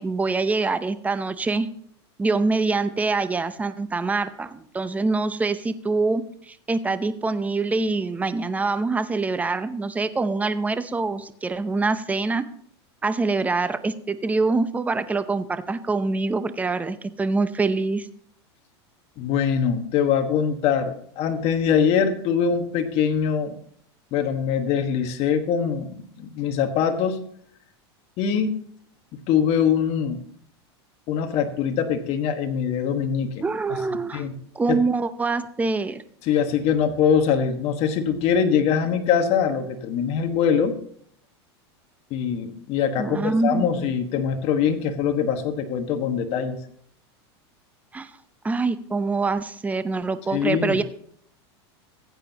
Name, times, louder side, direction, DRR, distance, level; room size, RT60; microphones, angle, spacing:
voice 1, 0.0-1.7 2.2-12.4 13.0-18.1 33.4-34.2 34.5-36.0 43.0-43.7 47.9-48.1 48.4-50.8, right 3 dB, 10° right, 12 dB, 0.7 m, -25 dB
voice 2, 19.2-23.5 24.1-27.2 28.2-28.5 29.3-30.2 31.1-33.4 34.1-34.3 34.7-34.8 36.2-40.7 42.1-46.6 50.3-50.8, left 7 dB, 45° left, 6 dB, 1.4 m, -23 dB
15.0 x 9.0 x 2.9 m, 0.63 s
supercardioid pair, 120°, 14 cm